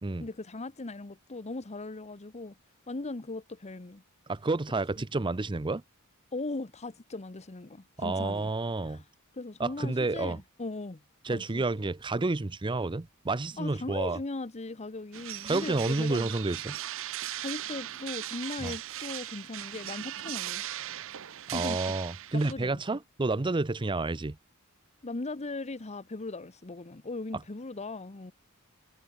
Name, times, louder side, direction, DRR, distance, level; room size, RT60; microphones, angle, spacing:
voice 1, 0.2-2.5 2.9-4.0 6.3-8.5 8.8-9.1 9.3-11.0 11.3-11.6 13.6-16.3 17.3-20.6 21.5-22.0 22.3-23.0 25.0-28.3, left 2 dB, 30° left, 0.9 m, -38 dB
voice 2, 4.3-5.8 8.0-9.0 9.6-10.4 11.2-14.2 15.4-16.8 18.6-18.7 21.5-24.4, right 3 dB, 20° right, 0.6 m, -30 dB
sound 1, 15.1-22.5, right 13 dB, 65° right, 0.8 m, -38 dB
head